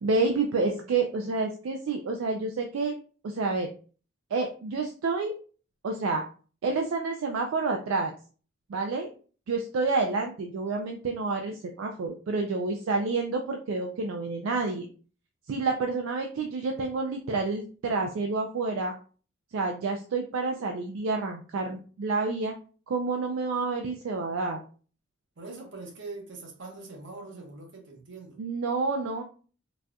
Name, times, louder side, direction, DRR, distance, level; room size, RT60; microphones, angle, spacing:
voice 1, 0.0-2.9 3.2-3.7 4.3-5.3 5.8-6.2 6.6-8.1 8.7-9.1 9.5-14.9 15.5-18.9 19.5-22.5 22.9-24.6 28.4-29.2, right 3 dB, 80° right, 3 dB, 0.4 m, -29 dB
voice 2, 25.4-28.4, right 3 dB, 65° right, 1 dB, 0.9 m, -43 dB
4.0 x 2.3 x 2.2 m, 0.39 s
head